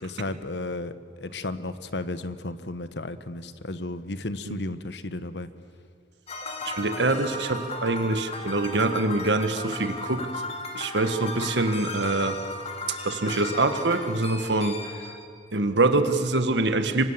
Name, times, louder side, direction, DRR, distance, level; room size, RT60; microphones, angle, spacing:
voice 1, 0.0-0.9 1.2-5.5, left 2 dB, 70° left, 13 dB, 1.1 m, -33 dB
sound 1, 6.3-15.2, left 2 dB, 35° left, 2.6 m, -36 dB
voice 2, 6.6-10.3 10.7-12.4 13.0-14.8 15.5-17.0, right 2 dB, 80° right, 9 dB, 1.6 m, -24 dB
27.0 x 24.5 x 7.4 m, 2.2 s
head